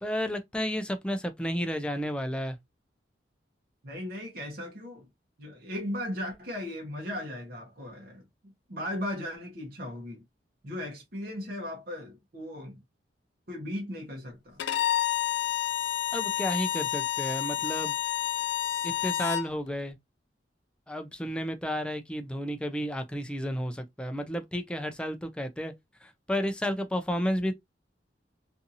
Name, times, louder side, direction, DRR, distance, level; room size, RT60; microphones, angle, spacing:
voice 1, 0.0-2.6 16.1-18.0 18.8-20.0 20.9-25.7 26.0-27.5, equal, 5° left, 0.3 m, -32 dB
voice 2, 3.8-5.1 5.4-8.2 8.7-10.2 10.6-12.8 13.5-14.6, left 1 dB, 55° right, 0.8 m, -37 dB
Bowed string instrument, 14.6-19.5, left 12 dB, 80° left, 0.4 m, -29 dB
2.7 x 2.6 x 2.5 m
head